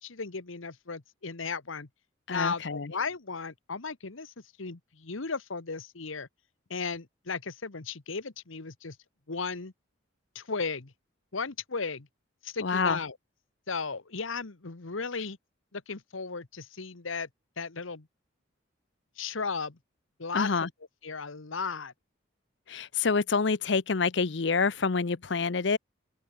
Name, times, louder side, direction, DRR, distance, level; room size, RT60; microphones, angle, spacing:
voice 1, 0.0-1.9 2.3-4.3 4.6-6.3 6.7-9.0 9.3-9.7 10.3-10.9 11.3-12.1 12.4-13.2 13.7-15.4 15.7-17.3 17.6-18.1 19.2-19.8 20.2-20.7 21.0-21.9, left 4 dB, 85° left, 1.3 m, -35 dB
voice 2, 2.3-2.9 12.6-13.0 20.3-20.7 22.7-25.8, left 4 dB, 60° left, 0.7 m, -27 dB
open air
head